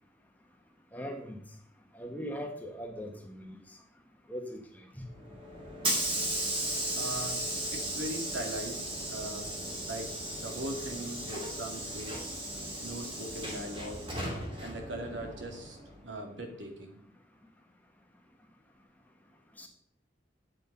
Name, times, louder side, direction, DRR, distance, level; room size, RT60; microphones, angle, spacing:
voice 1, 0.9-1.4 1.9-3.6 4.3-5.0 19.6-19.7, equal, 10° left, 2 dB, 1.4 m, -40 dB
Hiss / Sliding door, 5.1-16.0, right 1 dB, 30° right, 2.5 m, -36 dB
voice 2, 6.9-9.5 9.9-10.1 10.4-12.2 12.8-14.0 14.6-15.8 16.0-17.0, right 1 dB, 80° right, 3 dB, 2.3 m, -40 dB
10.5 x 7.6 x 5.4 m, 0.65 s
head